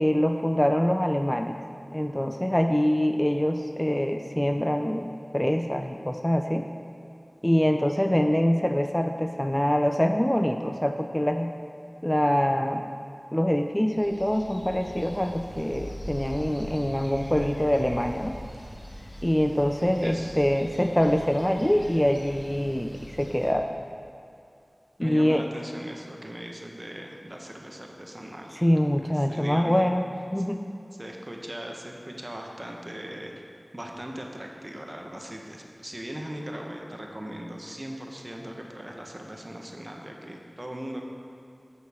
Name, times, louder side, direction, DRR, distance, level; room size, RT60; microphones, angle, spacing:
voice 1, 0.0-1.6 1.9-5.1 5.3-6.7 7.4-11.5 12.0-12.8 13.3-18.4 19.2-23.7 25.0-25.4 28.6-30.0 30.3-30.6, equal, 15° left, 5 dB, 0.3 m, -24 dB
sound 1, 13.9-23.5, equal, 80° left, 1.6 m, -42 dB
voice 2, 20.0-20.4 25.0-28.6 29.0-29.9 31.0-33.3 33.7-41.0, equal, 35° right, 1 dB, 0.9 m, -39 dB
8.6 x 6.4 x 3.5 m, 2.5 s
wide cardioid pair, 40°, 0 cm